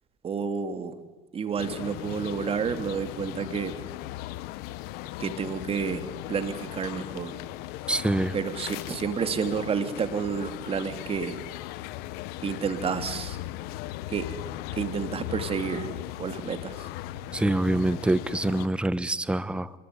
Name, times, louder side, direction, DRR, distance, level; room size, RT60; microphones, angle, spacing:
voice 1, 0.2-0.9 1.3-3.7 5.2-7.4 8.3-11.4 12.4-13.4 14.1-14.3 14.8-15.9 16.2-16.9, right 6 dB, 35° right, 9 dB, 2.9 m, -30 dB
sound 1, 1.6-18.7, left 15 dB, 75° left, 1.2 m, -38 dB
voice 2, 7.9-8.3 17.3-19.7, right 1 dB, 5° right, 16 dB, 1.0 m, -25 dB
26.0 x 22.0 x 9.8 m, 1.1 s
supercardioid pair, 100°, 16 cm